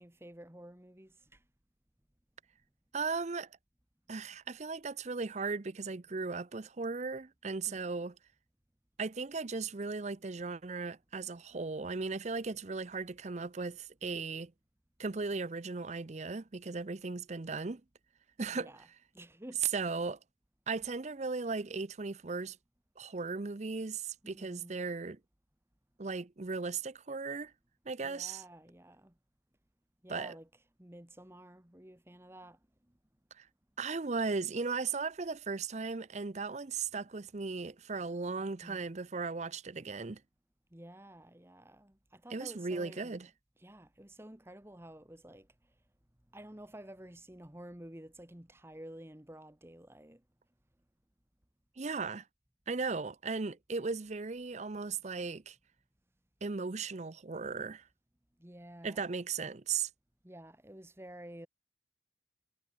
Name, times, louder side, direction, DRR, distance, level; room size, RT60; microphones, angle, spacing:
voice 1, 0.0-1.4 7.7-8.0 18.5-18.9 19.1-19.6 24.2-24.8 28.0-29.1 30.0-30.5 30.8-32.6 38.6-38.9 40.7-43.3 43.6-45.5 46.3-50.2 58.4-59.1 60.2-61.5, right 1 dB, 15° right, 1.4 m, -51 dB
voice 2, 2.9-3.5 4.1-8.1 9.0-14.5 15.0-17.8 18.4-18.7 19.7-20.2 20.7-22.6 23.0-25.2 26.0-27.5 27.9-28.4 30.1-30.4 33.4-33.5 33.8-40.2 42.3-43.3 51.8-52.2 52.7-55.6 56.4-57.9 58.8-59.9, right 4 dB, 35° right, 0.6 m, -37 dB
head